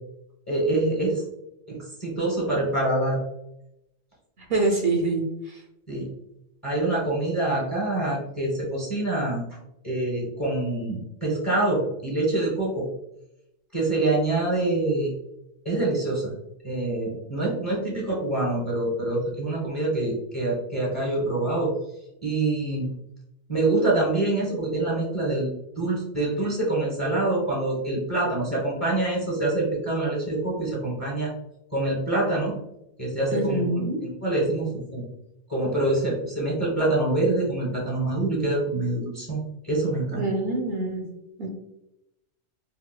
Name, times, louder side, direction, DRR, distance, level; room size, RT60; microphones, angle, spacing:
voice 1, 0.5-1.2 1.7-3.2 5.9-6.1 6.6-9.4 9.8-12.9 13.7-15.1 15.6-16.3 16.6-21.7 22.2-22.9 23.5-31.3 31.7-32.5 33.0-35.0 35.5-40.3, right 2 dB, 15° left, -5 dB, 0.9 m, -25 dB
voice 2, 4.5-5.6 33.3-34.0 40.1-41.0 41.4-41.5, right 2 dB, 65° right, 1 dB, 0.7 m, -25 dB
4.3 x 2.1 x 2.3 m, 0.85 s
omnidirectional pair, 1.2 m